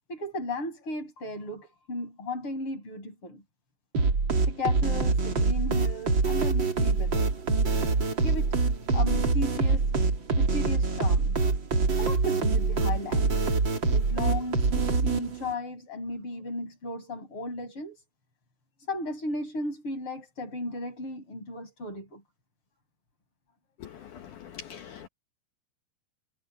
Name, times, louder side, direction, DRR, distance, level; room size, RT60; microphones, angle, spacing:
voice 1, 0.1-3.4 4.5-7.3 8.2-8.5 8.9-9.9 10.4-11.4 12.0-13.4 13.9-18.0 18.9-22.2, left 2 dB, 30° left, 7.0 m, -35 dB
sound 1, 3.9-15.5, right 4 dB, 30° right, 2.8 m, -25 dB
voice 2, 24.5-25.1, left 8 dB, 65° left, 2.2 m, -42 dB
omnidirectional pair, 4.8 m